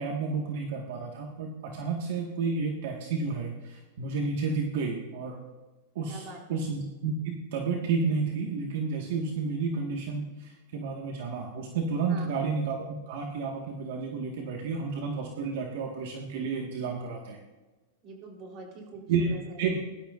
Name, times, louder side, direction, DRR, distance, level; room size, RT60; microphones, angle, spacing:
voice 1, 0.0-5.4 6.0-17.4 19.1-19.8, right 4 dB, 65° right, 0 dB, 1.8 m, -31 dB
voice 2, 6.0-6.6 12.1-12.3 18.0-19.6, right 2 dB, 40° right, 1 dB, 4.0 m, -44 dB
22.5 x 12.5 x 2.6 m, 1.2 s
supercardioid pair, 145°, 0 cm